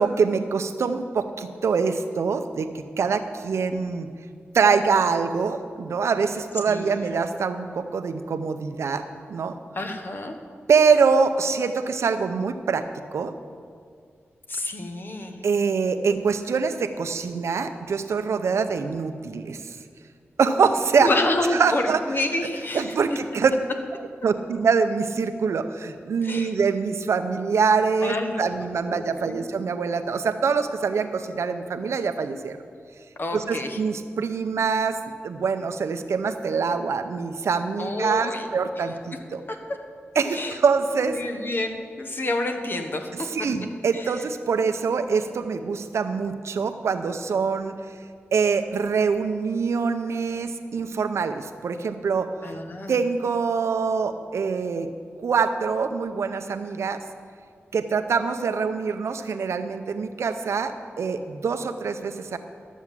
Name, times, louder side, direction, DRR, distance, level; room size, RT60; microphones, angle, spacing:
voice 1, 0.0-4.1 4.5-9.0 9.3-9.5 10.7-12.9 13.1-13.3 15.4-19.8 20.4-21.1 21.5-22.0 22.7-23.5 24.2-32.6 33.3-35.0 35.2-39.4 40.2-41.2 43.3-47.8 48.3-52.3 52.9-54.9 55.2-57.0 57.7-62.4, right 5 dB, 90° right, 9 dB, 0.7 m, -24 dB
voice 2, 6.7-7.0 9.7-10.3 14.5-15.4 21.0-22.9 26.2-26.5 28.0-29.5 33.2-33.8 37.8-38.5 38.8-38.9 39.5-39.6 40.3-40.6 41.0-43.3 43.9-44.2 52.4-53.0, left 2 dB, 50° left, 4 dB, 1.3 m, -29 dB
12.0 x 7.3 x 7.4 m, 2.2 s
wide cardioid pair, 70°, 5 cm